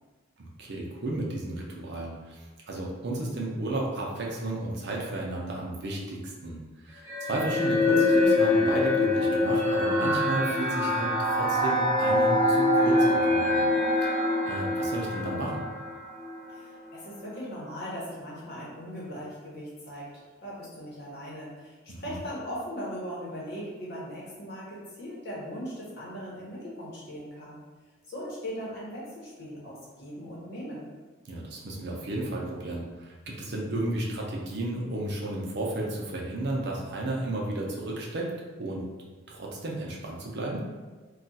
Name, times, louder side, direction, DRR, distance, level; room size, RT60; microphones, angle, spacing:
voice 1, 0.4-13.6 14.0-15.6 21.9-22.2 31.3-38.3 38.6-38.8 39.3-40.6, right 1 dB, 55° right, -2 dB, 0.5 m, -33 dB
sound 1, 7.1-16.6, left 2 dB, 10° right, 0.8 m, -24 dB
voice 2, 16.5-27.6 28.1-30.9, equal, 50° left, -6 dB, 0.9 m, -39 dB
2.3 x 2.3 x 4.0 m, 1.3 s
head